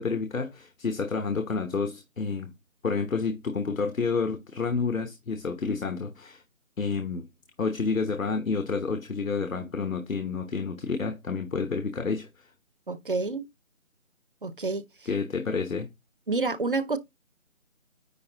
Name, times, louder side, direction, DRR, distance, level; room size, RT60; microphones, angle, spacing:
voice 1, 0.0-2.5 2.8-6.4 6.8-7.3 7.6-12.5 15.1-15.9, left 4 dB, 80° left, 1.2 m, -29 dB
voice 2, 12.9-13.4 14.4-14.8 16.3-17.0, right 3 dB, 40° right, 0.7 m, -28 dB
9.8 x 3.5 x 3.8 m
figure-of-eight pair, 165°, 40 cm